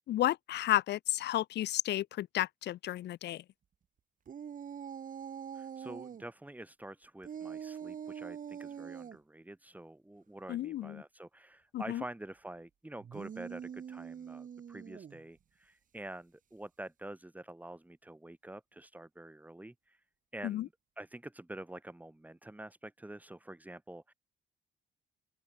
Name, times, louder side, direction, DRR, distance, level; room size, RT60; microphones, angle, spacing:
voice 1, 0.0-3.4 10.5-11.0 11.7-12.0 20.4-20.7, left 13 dB, 60° left, 0.4 m, -32 dB
sound 1, 4.3-6.2 7.2-9.2 13.0-15.2, right 8 dB, 40° right, 0.8 m, -44 dB
voice 2, 5.5-20.0 20.3-24.1, right 1 dB, 10° right, 1.5 m, -47 dB
open air
cardioid pair, 90°, 20 cm